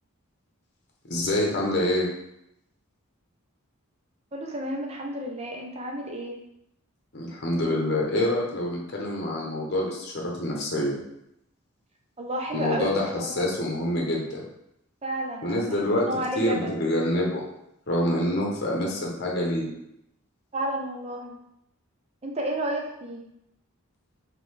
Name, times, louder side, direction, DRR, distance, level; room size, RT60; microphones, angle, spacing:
voice 1, 1.0-2.1 7.1-11.0 12.5-14.4 15.4-16.1 16.4-17.4 17.9-19.7, left 1 dB, 50° left, -2 dB, 0.9 m, -26 dB
voice 2, 4.3-6.4 12.2-13.5 15.0-16.7 20.5-21.4 22.2-23.2, right 1 dB, 30° right, 0 dB, 0.6 m, -32 dB
3.7 x 3.4 x 3.3 m, 0.81 s
head